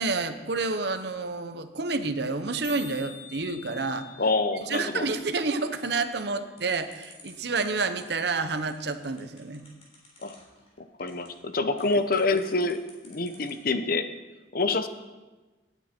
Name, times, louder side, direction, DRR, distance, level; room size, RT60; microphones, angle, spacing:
voice 1, 0.0-4.1 4.6-9.6, right 3 dB, 60° right, 9 dB, 0.9 m, -29 dB
sound 1, 0.6-0.7 0.8-0.9 1.1-1.3 1.6-1.7 1.9-2.1 2.4-2.5 2.6-6.6, left 7 dB, 70° left, 1.7 m, -48 dB
voice 2, 4.2-5.1 10.2-10.3 11.0-12.8 13.0-14.1 14.5-14.9, left 3 dB, 50° left, 10 dB, 0.8 m, -26 dB
sound 2, 6.6-13.7, left 3 dB, 35° left, 3.6 m, -53 dB
17.5 x 9.1 x 4.5 m, 1.2 s
head